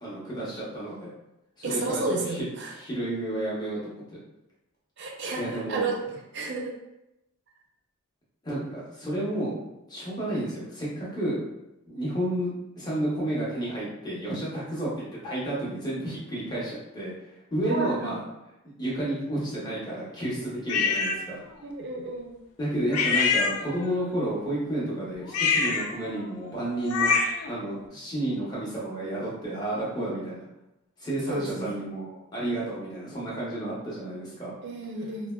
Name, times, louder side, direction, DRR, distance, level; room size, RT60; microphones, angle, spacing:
voice 1, 0.0-1.1 1.6-4.2 5.4-5.9 8.4-9.6 9.9-11.4 11.9-17.1 17.5-18.2 18.8-21.4 22.6-27.1 27.5-30.4 31.0-34.5, right 1 dB, 20° left, -7 dB, 0.8 m, -31 dB
voice 2, 1.6-2.7 5.0-6.0 6.3-6.7 17.7-18.0 21.6-22.3 31.3-31.8 34.6-35.3, right 3 dB, 50° right, 0 dB, 0.4 m, -31 dB
sound 1, 20.7-21.2 22.9-24.0 25.3-27.5, left 5 dB, 85° left, 0.3 m, -26 dB
3.3 x 2.1 x 2.2 m, 0.91 s
head